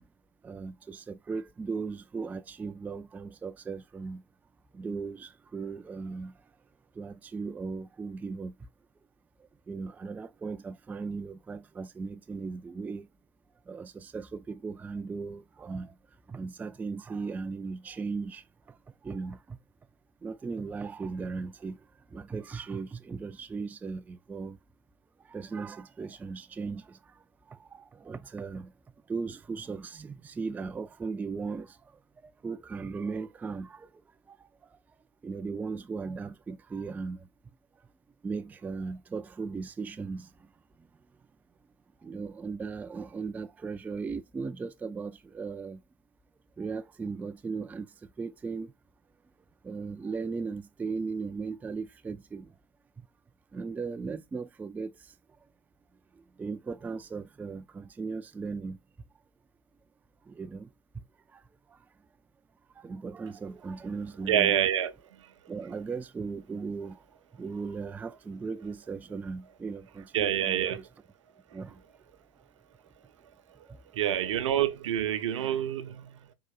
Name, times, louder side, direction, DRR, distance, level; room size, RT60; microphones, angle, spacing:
voice 1, 0.4-4.2 4.7-6.3 7.0-8.5 9.7-13.1 13.7-15.9 16.3-18.4 19.0-19.4 20.2-21.8 22.1-24.6 25.3-26.8 27.7-28.7 29.1-31.7 32.4-33.8 35.2-37.2 38.2-40.3 42.0-45.8 46.6-47.9 48.2-48.7 49.6-52.5 53.5-54.9 56.4-58.8 60.4-60.7 62.8-64.6 65.5-67.0 67.4-70.9 71.5-71.7, right 4 dB, 10° right, 0.3 m, -37 dB
voice 2, 64.3-65.3 70.1-70.8 71.5-71.6 73.6-73.7 73.9-76.3, right 10 dB, 70° right, 0.7 m, -28 dB
4.6 x 3.8 x 2.3 m
figure-of-eight pair, 85°, 16 cm